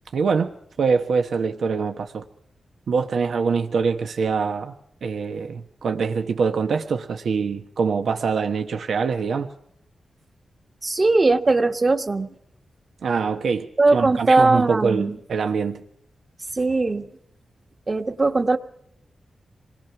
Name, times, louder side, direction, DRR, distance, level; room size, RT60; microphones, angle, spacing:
voice 1, 0.1-0.5 0.8-2.2 2.9-4.7 5.0-9.5 13.0-13.7 13.9-15.8, right 5 dB, 75° right, 1.2 m, -24 dB
voice 2, 10.8-12.3 13.8-15.2 16.5-17.1 17.9-18.6, right 3 dB, 30° right, 1.5 m, -19 dB
27.5 x 21.0 x 6.0 m
wide cardioid pair, 135°, 0 cm